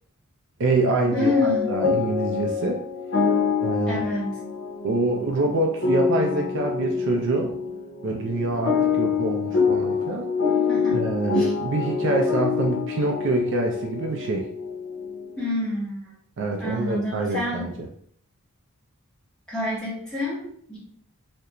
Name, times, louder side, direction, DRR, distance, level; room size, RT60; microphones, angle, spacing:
voice 1, 0.6-1.3 1.7-2.8 3.6-4.1 4.8-7.5 8.0-10.3 10.9-14.5 16.4-17.9, right 2 dB, 55° right, 1 dB, 0.3 m, -25 dB
sound 1, 1.1-15.4, left 5 dB, 75° left, 0.6 m, -26 dB
voice 2, 1.1-1.8 3.9-4.4 10.7-11.0 11.3-11.5 15.4-16.0 16.6-17.7 19.5-20.8, left 1 dB, 5° left, -9 dB, 0.9 m, -28 dB
2.4 x 2.1 x 2.8 m, 0.63 s
head